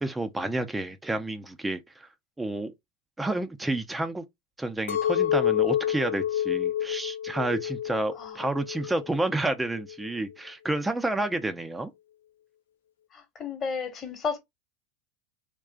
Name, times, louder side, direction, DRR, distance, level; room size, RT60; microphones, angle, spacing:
voice 1, 0.0-2.1 2.4-2.7 3.2-4.2 4.6-11.9, right 2 dB, 10° right, 0.5 m, -30 dB
Chink clink, 4.9-9.2 9.6-10.2, left 10 dB, 90° left, 0.4 m, -28 dB
voice 2, 8.1-8.5 13.1-14.4, left 5 dB, 35° left, 1.1 m, -33 dB
3.6 x 2.3 x 2.3 m
hypercardioid pair, 100°, 0 cm